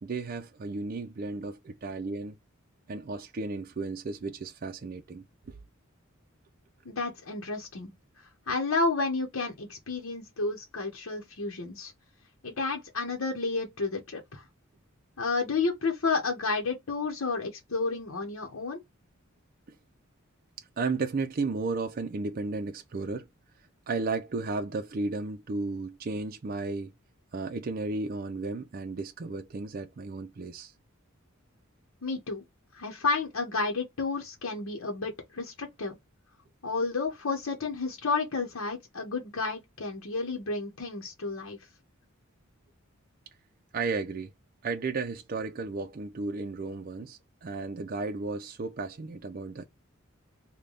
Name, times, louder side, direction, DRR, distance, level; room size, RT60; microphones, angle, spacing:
voice 1, 0.0-2.4 2.9-5.6 20.8-23.3 23.9-26.9 27.3-30.7 43.7-44.3 44.6-49.6, right 3 dB, 45° right, 0.4 m, -34 dB
voice 2, 6.8-7.9 8.5-11.9 12.4-14.4 15.2-18.8 32.0-32.4 32.7-36.0 36.6-41.6, left 3 dB, 80° left, 1.0 m, -31 dB
3.3 x 2.2 x 3.8 m
head